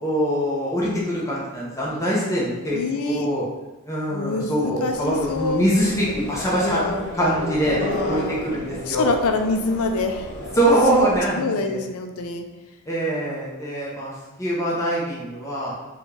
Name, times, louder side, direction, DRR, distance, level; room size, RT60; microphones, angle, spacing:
voice 1, 0.0-3.4 3.8-6.8 7.1-7.8 8.1-9.1 10.5-11.8 12.9-15.7, right 1 dB, 15° left, -6 dB, 0.7 m, -23 dB
voice 2, 2.7-3.3 4.1-5.6 6.6-7.0 7.8-8.5 8.9-10.3 10.9-11.1 11.4-12.5, left 3 dB, 75° left, 5 dB, 0.4 m, -26 dB
sound 1, 4.9-11.3, left 1 dB, 45° left, 0.8 m, -33 dB
4.0 x 2.4 x 3.3 m, 1.1 s
head